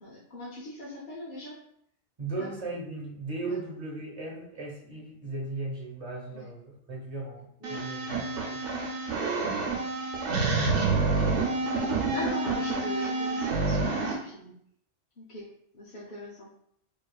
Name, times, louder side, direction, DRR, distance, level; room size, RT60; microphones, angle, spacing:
voice 1, 0.0-1.6 2.4-2.5 3.4-3.5 6.3-6.5 7.6-7.8 9.1-9.8 10.5-11.2 11.6-14.5 15.2-15.5 15.7-16.5, left 1 dB, 60° left, -5 dB, 0.9 m, -41 dB
voice 2, 2.2-8.6, right 2 dB, 35° right, -2 dB, 0.9 m, -37 dB
sound 1, 7.6-14.1, right 3 dB, 80° right, 1.0 m, -28 dB
4.6 x 2.5 x 2.3 m, 0.70 s
omnidirectional pair, 1.2 m